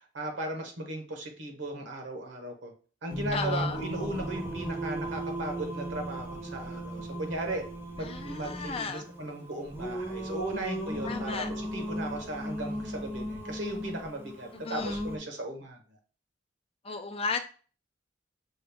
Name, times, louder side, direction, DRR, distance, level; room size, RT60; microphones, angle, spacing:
voice 1, 0.0-2.7 3.0-7.6 8.0-15.8, right 1 dB, 85° right, 4 dB, 1.1 m, -37 dB
Singing, 3.1-15.2, right 1 dB, 10° right, 0.8 m, -36 dB
voice 2, 3.3-3.8 8.0-9.1 11.0-11.5 14.5-15.0 16.8-17.4, left 4 dB, 30° left, 6 dB, 0.5 m, -34 dB
6.2 x 2.3 x 3.4 m, 0.39 s
head